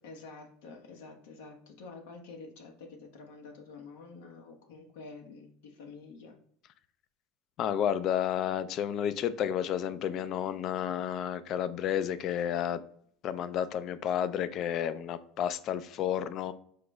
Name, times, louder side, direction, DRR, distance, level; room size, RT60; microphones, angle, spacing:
voice 1, 0.0-6.3, left 4 dB, 75° left, 3 dB, 0.9 m, -48 dB
voice 2, 7.6-12.8 13.2-16.5, left 9 dB, 50° left, 14 dB, 0.3 m, -31 dB
4.8 x 2.0 x 4.5 m, 0.64 s
supercardioid pair, 100°, 0 cm